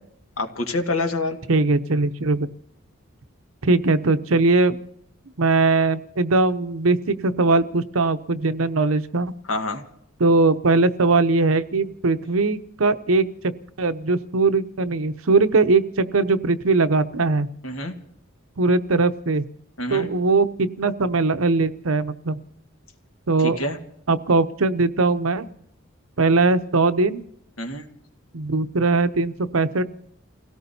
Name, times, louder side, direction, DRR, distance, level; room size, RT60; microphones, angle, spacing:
voice 1, 0.4-1.4 9.5-9.8 17.6-17.9 19.8-20.1 23.4-23.8 27.6-27.9, left 2 dB, 85° left, 5 dB, 1.8 m, -26 dB
voice 2, 1.5-2.5 3.6-4.8 5.4-9.3 10.2-13.5 13.8-17.5 18.6-19.4 19.9-22.4 23.3-23.6 24.1-25.5 26.2-27.2 28.3-29.8, right 3 dB, 90° right, 11 dB, 0.8 m, -20 dB
29.5 x 17.5 x 2.8 m, 0.73 s
head